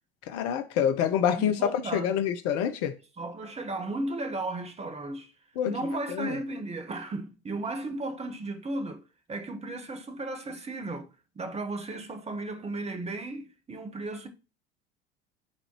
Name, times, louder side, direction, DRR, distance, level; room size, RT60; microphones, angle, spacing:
voice 1, 0.3-2.9 5.6-5.7 6.1-6.4, left 8 dB, 50° left, 0.8 m, -27 dB
voice 2, 1.4-2.1 3.2-5.3 5.7-9.0 9.3-11.1 11.3-14.3, right 2 dB, 20° right, 1.3 m, -35 dB
11.0 x 4.1 x 3.0 m
figure-of-eight pair, 65°, 31 cm